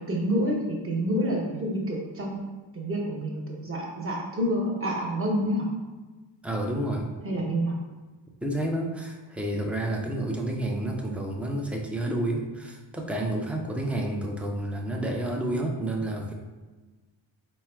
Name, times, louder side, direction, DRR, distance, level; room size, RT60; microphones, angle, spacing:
voice 1, 0.0-2.4 2.7-5.7 7.2-7.8, equal, 25° right, -2 dB, 1.0 m, -28 dB
voice 2, 6.4-7.1 8.4-16.3, right 1 dB, 5° right, 0 dB, 0.4 m, -30 dB
4.6 x 2.2 x 4.3 m, 1.3 s
cardioid pair, 130°, 48 cm